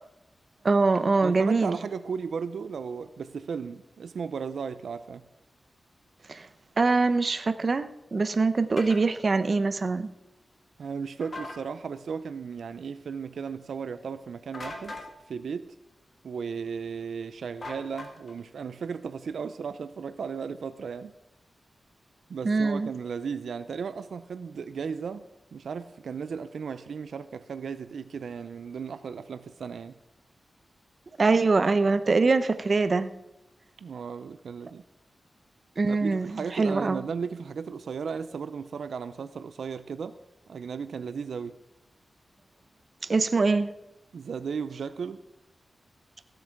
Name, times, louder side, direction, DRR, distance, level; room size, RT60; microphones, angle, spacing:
voice 1, 0.6-1.8 6.3-6.5 6.8-10.1 22.4-22.9 31.2-33.1 35.8-37.0 43.1-43.7, right 3 dB, 45° right, 11 dB, 0.7 m, -23 dB
voice 2, 1.2-5.2 10.8-15.0 15.3-15.7 16.2-21.1 22.3-25.2 25.5-30.0 33.8-34.8 35.9-40.2 40.5-41.6 44.1-45.2, right 6 dB, 85° right, 12 dB, 0.5 m, -35 dB
sound 1, 8.8-9.0 11.2-11.6 14.5-15.1 17.6-18.4, left 2 dB, 45° left, 2.0 m, -39 dB
15.5 x 7.9 x 5.9 m, 0.93 s
wide cardioid pair, 105°, 0 cm